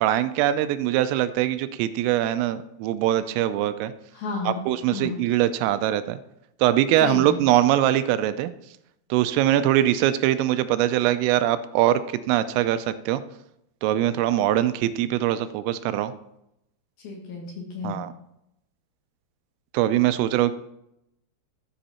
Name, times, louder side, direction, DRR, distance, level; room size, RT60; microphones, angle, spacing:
voice 1, 0.0-3.9 4.4-6.2 6.6-8.5 9.1-13.2 13.8-16.1 17.8-18.1 19.7-20.5, right 13 dB, 85° right, 12 dB, 3.1 m, -22 dB
voice 2, 4.1-5.2 7.0-7.4 17.0-18.0, left 4 dB, 60° left, -1 dB, 3.0 m, -32 dB
13.0 x 7.8 x 4.3 m, 0.83 s
omnidirectional pair, 5.9 m